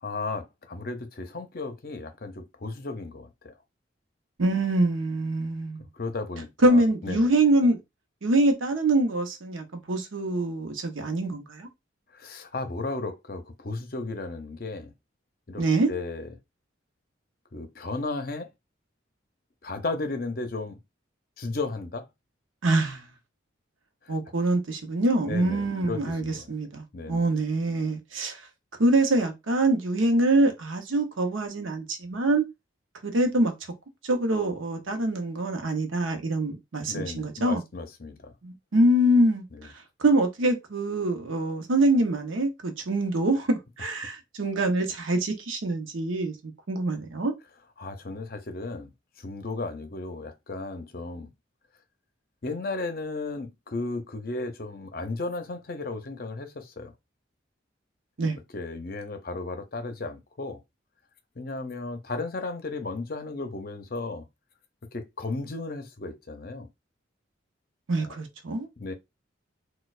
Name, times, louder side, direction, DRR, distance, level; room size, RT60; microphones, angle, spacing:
voice 1, 0.0-3.5 5.9-7.3 12.1-14.9 15.5-16.4 17.5-18.5 19.6-20.8 21.4-22.1 24.0-24.1 25.2-26.5 26.9-27.3 36.3-36.4 36.9-38.3 39.5-39.7 47.8-48.9 49.2-51.3 52.4-56.9 58.5-60.6 61.4-64.2 64.9-66.7 68.0-68.1 68.8-68.9, left 3 dB, 50° left, 0.6 m, -34 dB
voice 2, 4.4-5.8 6.6-7.8 8.2-11.7 15.6-15.9 22.6-23.0 24.1-28.4 28.8-32.4 33.0-33.5 34.0-37.6 38.4-39.7 40.0-47.3 58.2-58.4 67.9-68.7, right 1 dB, 85° right, 0.8 m, -25 dB
4.2 x 2.3 x 2.4 m
head